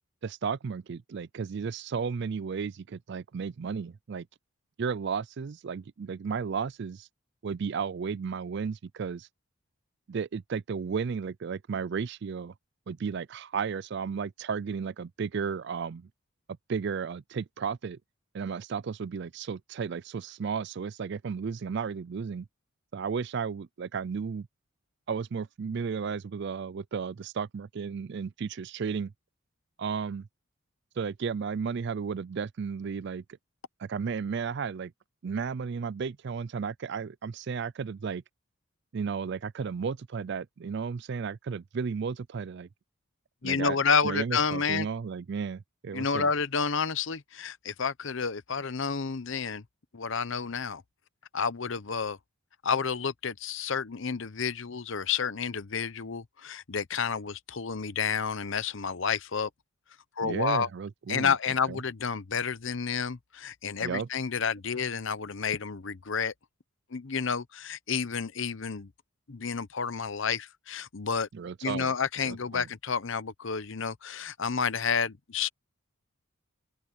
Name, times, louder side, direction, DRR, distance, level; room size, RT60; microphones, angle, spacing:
voice 1, 0.2-4.3 4.8-7.1 7.4-9.3 10.1-12.5 12.9-16.1 16.7-18.0 18.3-22.5 22.9-24.5 25.1-29.1 29.8-30.3 31.0-33.2 33.8-34.9 35.2-38.2 38.9-42.7 43.4-43.8 44.0-46.3 60.2-61.3 61.7-61.8 63.8-64.1 71.3-71.9 72.2-72.7, right 6 dB, 50° right, 0.4 m, -33 dB
voice 2, 43.4-44.9 45.9-49.6 49.9-50.8 51.3-52.2 52.6-59.5 60.2-60.7 61.1-66.3 66.9-68.9 69.3-71.3 71.6-75.5, left 6 dB, 60° left, 0.8 m, -30 dB
open air
head